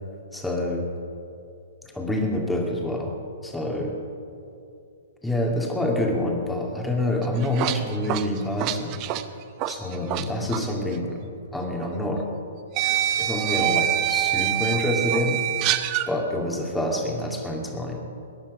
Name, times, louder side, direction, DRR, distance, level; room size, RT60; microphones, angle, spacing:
voice 1, 0.3-0.9 1.9-3.1 3.4-4.0 5.2-9.0 9.7-11.2 11.5-12.3 13.2-15.4 16.1-18.0, left 1 dB, 5° left, -1 dB, 2.4 m, -27 dB
sound 1, 7.2-10.2 10.5-10.7 11.8-11.9 12.7-16.1, right 13 dB, 35° right, 0.7 m, -25 dB
21.5 x 10.5 x 5.2 m, 2.6 s
figure-of-eight pair, 120°, 0 cm